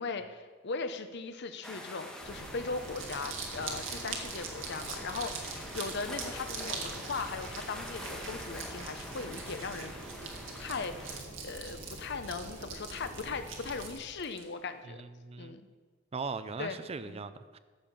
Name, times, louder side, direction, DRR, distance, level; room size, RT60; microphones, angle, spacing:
voice 1, 0.0-9.9 10.6-15.0 15.4-15.6 16.6-16.8 17.0-17.3, left 4 dB, 60° left, 9 dB, 0.8 m, -38 dB
sound 1, 1.6-11.2, left 1 dB, 5° left, 1.3 m, -45 dB
sound 2, 2.2-13.9, right 1 dB, 65° right, 2.8 m, -47 dB
Crumpling crinkling, 2.7-14.4, right 5 dB, 80° right, 1.8 m, -43 dB
voice 2, 14.9-15.6 16.1-17.6, right 4 dB, 30° right, 12 dB, 0.5 m, -39 dB
14.0 x 5.6 x 7.0 m, 1.5 s
head